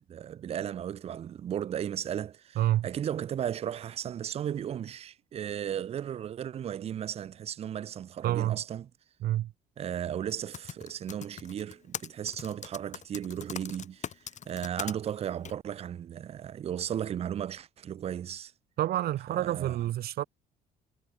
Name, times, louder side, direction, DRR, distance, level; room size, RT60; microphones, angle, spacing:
voice 1, 0.0-8.9 9.8-14.1 14.5-18.5 19.3-19.8, right 9 dB, 35° right, 0.5 m, -35 dB
voice 2, 2.5-2.9 8.2-8.6 9.2-9.5 18.8-20.2, right 13 dB, 65° right, 1.4 m, -28 dB
Typing, 10.3-14.9 15.4-15.5, left 8 dB, 45° left, 3.1 m, -40 dB
cardioid pair, 110°, 17 cm